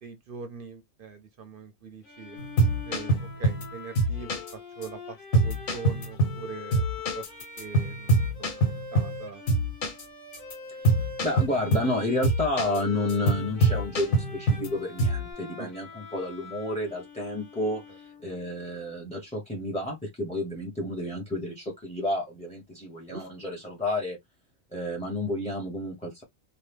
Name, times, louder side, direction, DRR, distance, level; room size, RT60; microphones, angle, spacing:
voice 1, 0.0-2.4 2.9-4.4 4.8-6.8 7.1-7.3 7.6-8.1 8.4-8.6 8.9-9.4 15.6-15.7 23.1-23.3, right 6 dB, 55° right, 0.6 m, -42 dB
Bowed string instrument, 2.0-18.6, left 5 dB, 45° left, 1.2 m, -43 dB
sound 1, 2.4-3.7 4.0-4.5 4.8-4.9 5.3-6.4 6.7-9.2 9.5-10.0 10.3-10.5 10.8-11.9 12.2-12.8 13.1-14.7 15.0-15.3, right 2 dB, 80° left, 1.6 m, -24 dB
voice 2, 10.7-24.2 24.7-26.2, left 1 dB, 5° left, 0.7 m, -31 dB
3.0 x 2.3 x 3.4 m
omnidirectional pair, 1.4 m